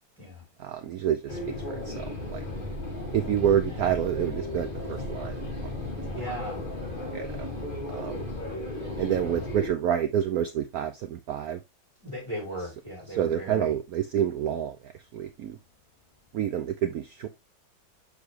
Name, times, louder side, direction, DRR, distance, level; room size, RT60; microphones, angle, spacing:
voice 1, 0.6-1.4 1.7-2.4 3.1-5.7 7.1-7.5 7.9-8.2 9.0-11.6 13.2-15.6 16.3-17.3, right 10 dB, 85° right, 0.8 m, -28 dB
sound 1, 1.3-9.7, left 2 dB, 25° left, 2.9 m, -35 dB
voice 2, 6.1-7.1 12.0-13.7, right 1 dB, 15° right, 3.5 m, -38 dB
6.6 x 5.0 x 3.1 m
omnidirectional pair, 2.2 m